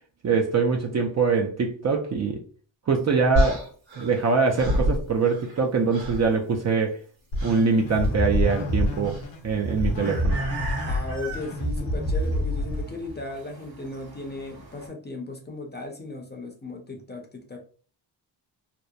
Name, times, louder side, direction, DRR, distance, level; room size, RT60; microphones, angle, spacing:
voice 1, 0.2-2.4 2.9-3.7 4.0-7.0 7.4-10.4, right 5 dB, 40° right, 0.4 m, -23 dB
sound 1, 3.3-5.6 5.9-6.3 7.3-7.7 9.0-9.3, left 1 dB, 85° right, 1.3 m, -27 dB
sound 2, 7.3-13.1, left 1 dB, 85° left, 0.8 m, -27 dB
sound 3, 7.5-14.9, right 4 dB, 55° right, 1.1 m, -41 dB
voice 2, 10.9-17.6, left 2 dB, 25° left, 0.6 m, -36 dB
2.8 x 2.1 x 2.3 m
cardioid pair, 75°, 45 cm